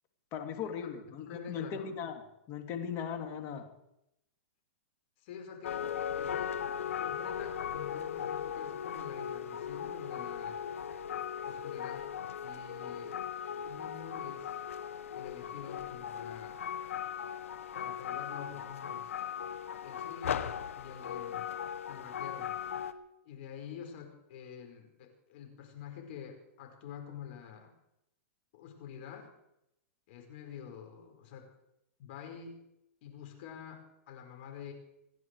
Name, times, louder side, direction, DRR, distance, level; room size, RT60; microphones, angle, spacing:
voice 1, 0.3-2.2 2.5-3.7, left 7 dB, 40° left, 5 dB, 2.7 m, -38 dB
voice 2, 1.2-1.9 5.2-5.9 6.2-6.6 7.0-10.6 11.5-12.1 12.4-13.2 13.5-14.6 15.2-16.6 17.7-19.1 19.8-21.5 21.9-22.5 23.3-27.7 28.5-29.3 30.1-31.5 32.0-32.6 33.0-34.7, left 7 dB, 55° left, 3 dB, 5.1 m, -47 dB
sound 1, 5.6-22.9, left 8 dB, 80° left, 1.3 m, -38 dB
27.5 x 10.5 x 4.8 m, 0.83 s
hypercardioid pair, 130°, 7 cm